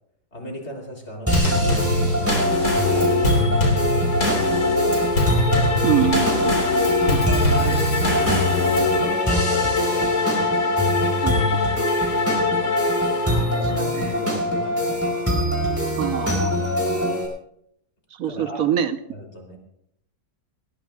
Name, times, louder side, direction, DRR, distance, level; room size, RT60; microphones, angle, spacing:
voice 1, 0.3-5.1 5.5-6.0 7.0-7.9 8.5-11.2 13.0-13.2 13.5-16.0 17.0-17.2 18.3-18.6 19.1-19.6, equal, 40° left, 1 dB, 3.7 m, -37 dB
Drum kit / Snare drum / Bass drum, 1.3-9.0, left 2 dB, 55° left, 4.1 m, -23 dB
sound 1, 1.3-17.3, equal, 10° right, 4.9 m, -23 dB
sound 2, 2.5-13.8, left 5 dB, 85° left, 2.3 m, -27 dB
voice 2, 5.8-7.8 11.2-11.9 13.4-13.6 13.9-14.1 16.0-16.6 18.1-19.0, right 10 dB, 60° right, 9 dB, 1.3 m, -26 dB
20.5 x 18.5 x 2.4 m, 0.74 s
omnidirectional pair, 1.8 m